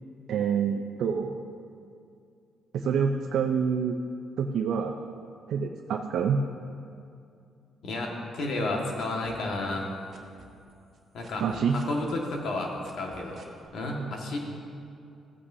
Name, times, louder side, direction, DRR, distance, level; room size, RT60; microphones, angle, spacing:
voice 1, 0.3-1.4 2.7-4.0 4.4-5.0 5.5-6.4 11.4-11.8, right 7 dB, 75° right, 2 dB, 0.5 m, -27 dB
voice 2, 7.8-9.9 11.1-11.4 11.7-13.4 13.7-14.4, left 2 dB, 70° left, 0 dB, 1.6 m, -31 dB
sound 1, 8.4-9.8 10.1-13.7, right 5 dB, 55° right, 1.2 m, -51 dB
15.0 x 8.7 x 2.7 m, 2.5 s
cardioid pair, 90°, 0 cm